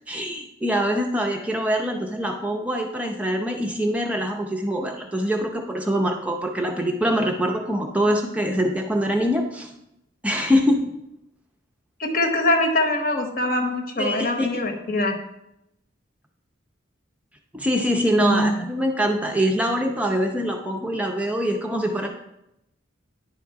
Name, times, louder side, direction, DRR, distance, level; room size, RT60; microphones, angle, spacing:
voice 1, 0.1-9.7 10.2-10.9 14.0-14.6 17.5-22.1, equal, 5° right, 2 dB, 0.5 m, -24 dB
voice 2, 12.0-15.2 18.2-18.5, left 1 dB, 50° left, 3 dB, 1.1 m, -23 dB
10.0 x 3.7 x 4.6 m, 0.85 s
head